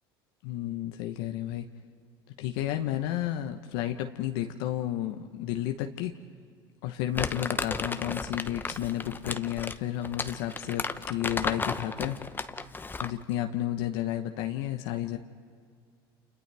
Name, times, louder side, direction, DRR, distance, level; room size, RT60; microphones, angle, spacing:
voice 1, 0.4-1.7 2.4-6.1 6.8-12.2 13.0-15.2, left 12 dB, 70° left, 5 dB, 1.0 m, -32 dB
Crumpling crinkling, 7.1-13.2, left 3 dB, 15° left, 0.9 m, -34 dB
30.0 x 28.5 x 3.5 m, 2.1 s
hypercardioid pair, 85°, 12 cm